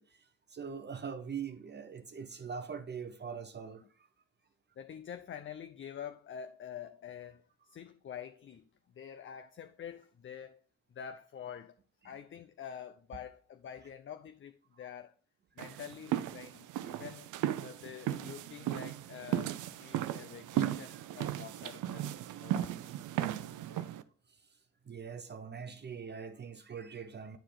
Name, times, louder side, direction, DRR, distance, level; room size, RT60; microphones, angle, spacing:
voice 1, 0.0-4.1 12.0-12.1 15.6-15.8 20.9-21.0 24.9-27.4, right 6 dB, 35° right, 0.8 m, -43 dB
voice 2, 4.8-8.6 8.9-10.6 10.9-11.7 12.0-15.1 15.6-22.1 22.4-22.8 23.1-23.4 23.7-23.9, left 8 dB, 40° left, 0.6 m, -47 dB
sound 1, 15.6-24.0, right 12 dB, 85° right, 0.6 m, -36 dB
10.0 x 4.8 x 3.9 m
cardioid pair, 90°, 30 cm